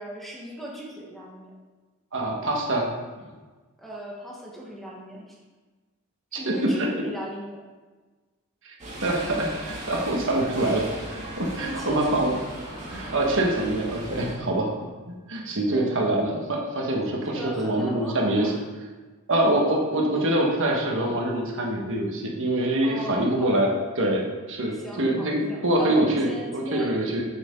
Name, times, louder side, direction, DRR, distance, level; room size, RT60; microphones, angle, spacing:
voice 1, 0.0-1.5 3.8-5.4 6.4-7.6 11.6-12.5 15.7-16.1 17.1-18.6 22.8-23.8 24.7-27.1, equal, ahead, -4 dB, 1.5 m, -38 dB
voice 2, 2.1-2.9 6.3-6.7 8.6-8.7 9.0-9.6 9.9-10.8 11.1-12.3 12.9-14.7 15.1-18.5 19.3-23.7 24.0-24.2 24.5-27.2, right 1 dB, 60° right, -1 dB, 1.5 m, -25 dB
sound 1, 8.8-14.3, right 1 dB, 30° right, 2.4 m, -37 dB
8.0 x 7.8 x 3.8 m, 1.3 s
head